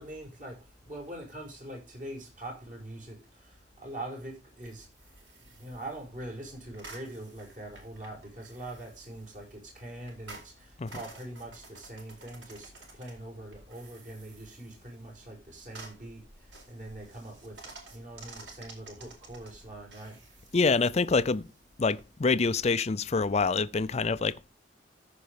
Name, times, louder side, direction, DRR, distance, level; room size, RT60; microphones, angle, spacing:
voice 1, 0.0-4.9 5.6-20.2, right 1 dB, 45° right, 5.5 m, -43 dB
sound 1, 4.6-22.8, right 3 dB, 85° right, 4.4 m, -52 dB
voice 2, 20.5-21.5 21.8-24.5, left 4 dB, 35° left, 0.5 m, -26 dB
14.0 x 5.1 x 5.2 m
head